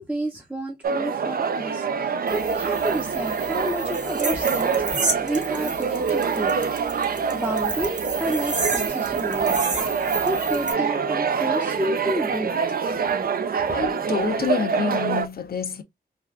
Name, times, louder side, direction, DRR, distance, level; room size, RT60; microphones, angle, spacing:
voice 1, 0.0-6.5 7.3-9.6 10.2-12.5 13.7-13.8, right 1 dB, 10° right, 0.6 m, -30 dB
sound 1, 0.8-15.3, right 6 dB, 60° right, 0.4 m, -25 dB
sound 2, 2.3-10.7, right 3 dB, 45° right, 0.9 m, -31 dB
voice 2, 13.7-15.8, left 7 dB, 65° left, 0.6 m, -27 dB
3.3 x 2.4 x 2.3 m
wide cardioid pair, 85°, 17 cm